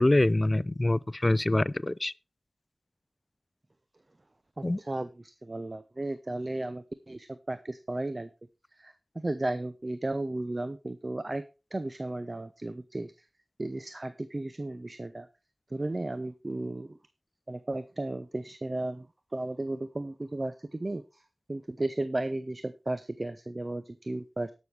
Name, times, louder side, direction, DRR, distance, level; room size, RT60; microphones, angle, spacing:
voice 1, 0.0-2.1 4.6-4.8, left 1 dB, 30° left, 0.4 m, -25 dB
voice 2, 4.6-8.3 8.8-11.4 11.7-13.1 13.6-15.3 15.7-17.0 17.5-19.1 19.3-21.2 21.5-24.5, right 2 dB, 40° right, 0.6 m, -34 dB
18.0 x 6.3 x 3.3 m
cardioid pair, 50°, 0 cm